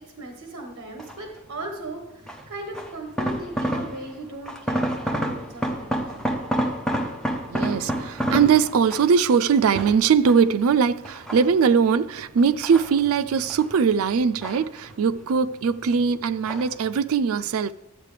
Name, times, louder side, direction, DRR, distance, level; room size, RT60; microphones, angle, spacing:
voice 1, 0.2-6.3, right 2 dB, 55° right, 1.1 m, -38 dB
sound 1, 1.0-1.4 2.3-4.2 4.5-9.2 9.7-10.6 11.0-11.9 12.4-13.7 14.0-15.2 15.4-16.0 16.5-16.8 17.1-17.2, equal, 5° left, 0.8 m, -29 dB
voice 2, 7.5-17.7, right 6 dB, 75° right, 0.4 m, -21 dB
12.5 x 8.1 x 3.3 m
head